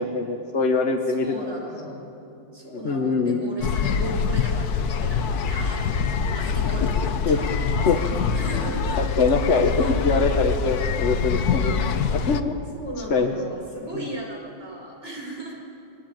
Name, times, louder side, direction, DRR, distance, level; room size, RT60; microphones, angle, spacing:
voice 1, 0.0-1.3 2.7-3.5 7.3-7.4 7.8-8.0 9.0-11.8 12.1-12.5 13.1-13.3, left 4 dB, 40° left, 3 dB, 1.3 m, -23 dB
voice 2, 1.1-2.1 2.5-9.0 9.8-10.0 11.8-12.1 12.7-15.6, right 1 dB, 35° right, -1 dB, 5.3 m, -37 dB
sound 1, 3.6-12.4, left 6 dB, 60° left, 1.3 m, -24 dB
22.5 x 20.0 x 9.0 m, 2.7 s
omnidirectional pair, 2.0 m